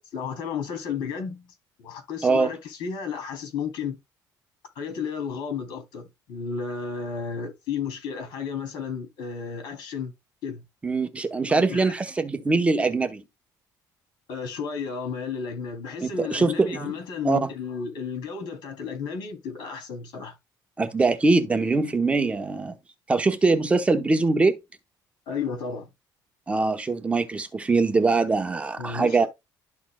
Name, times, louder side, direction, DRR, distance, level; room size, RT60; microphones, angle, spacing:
voice 1, 0.0-4.0 4.7-10.1 10.4-10.6 11.5-11.9 14.3-20.3 25.3-25.9 28.8-29.3, left 6 dB, 90° left, 3.1 m, -33 dB
voice 2, 10.8-13.2 16.0-16.9 17.2-17.5 20.8-22.7 23.1-24.6 26.5-29.3, right 3 dB, 15° right, 0.9 m, -22 dB
12.5 x 4.2 x 2.3 m
cardioid pair, 150°, 8 cm